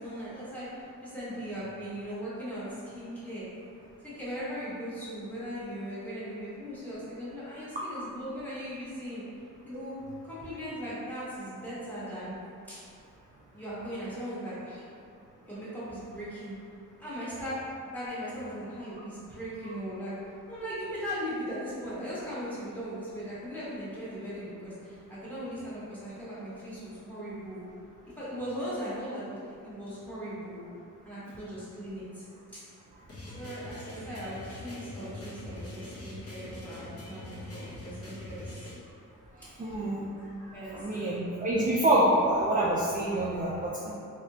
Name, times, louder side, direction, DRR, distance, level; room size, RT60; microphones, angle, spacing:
voice 1, 0.0-3.5 4.0-9.2 9.7-9.9 10.2-12.4 12.7-12.8 13.5-14.8 15.5-16.6 17.0-20.2 20.5-27.6 28.2-29.4 29.6-30.6 31.0-32.2 32.5-32.6 33.3-38.7 40.5-40.9, equal, 5° left, -11 dB, 1.2 m, -38 dB
sound 1, 33.1-38.7, left 1 dB, 45° left, 0.8 m, -43 dB
voice 2, 39.4-40.0 40.7-43.9, right 1 dB, 25° right, -6 dB, 0.4 m, -26 dB
3.3 x 2.8 x 2.7 m, 2.5 s
wide cardioid pair, 110°, 32 cm